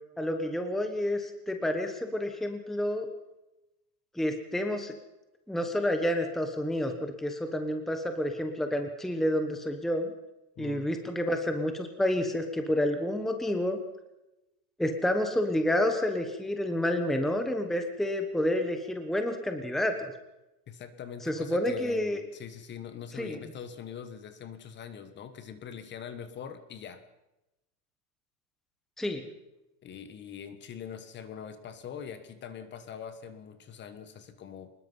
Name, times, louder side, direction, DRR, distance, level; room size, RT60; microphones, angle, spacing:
voice 1, 0.2-3.1 4.1-4.9 5.5-10.1 10.6-13.8 14.8-20.1 21.2-22.2 23.2-23.4 29.0-29.3, left 1 dB, ahead, 5 dB, 1.2 m, -29 dB
voice 2, 10.6-10.9 20.7-27.0 29.8-34.7, left 7 dB, 20° left, 11 dB, 1.4 m, -43 dB
24.0 x 20.5 x 5.6 m, 0.96 s
supercardioid pair, 155°, 48 cm